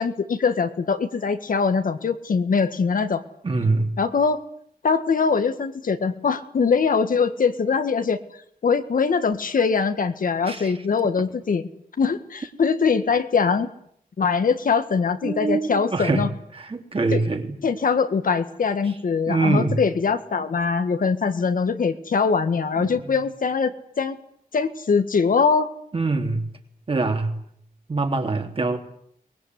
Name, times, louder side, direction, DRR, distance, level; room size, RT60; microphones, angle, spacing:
voice 1, 0.0-3.2 4.0-4.4 4.8-8.2 8.6-11.7 12.0-13.7 14.2-16.3 17.1-17.2 17.6-24.2 24.5-25.7, left 5 dB, 65° left, 9 dB, 1.7 m, -22 dB
voice 2, 3.4-3.9 10.4-10.7 15.2-16.3 16.5-17.5 19.3-19.8 22.8-23.1 25.9-26.5 26.9-27.3 27.9-28.8, right 3 dB, 35° right, 4 dB, 3.2 m, -24 dB
23.5 x 20.5 x 9.6 m, 0.67 s
wide cardioid pair, 180°, 15 cm